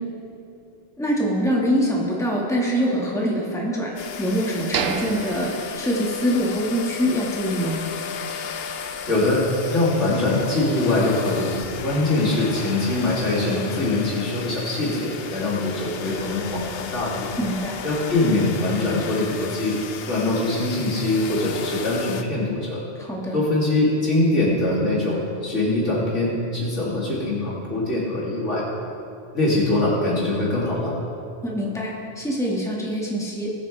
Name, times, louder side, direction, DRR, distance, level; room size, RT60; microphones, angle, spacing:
voice 1, 1.0-7.8 17.4-17.8 23.0-23.4 31.4-33.5, equal, 5° left, -4 dB, 1.7 m, -24 dB
sound 1, 4.0-22.2, left 7 dB, 60° left, 0.9 m, -34 dB
sound 2, 4.7-6.7 7.0-7.1 7.6-7.8, right 6 dB, 65° right, 0.8 m, -30 dB
voice 2, 9.1-9.4 9.7-11.5 11.8-17.3 17.8-19.8 20.1-22.8 23.3-28.6 29.3-30.9, left 2 dB, 85° left, -7 dB, 3.2 m, -23 dB
20.0 x 8.2 x 3.4 m, 2.6 s
omnidirectional pair, 1.2 m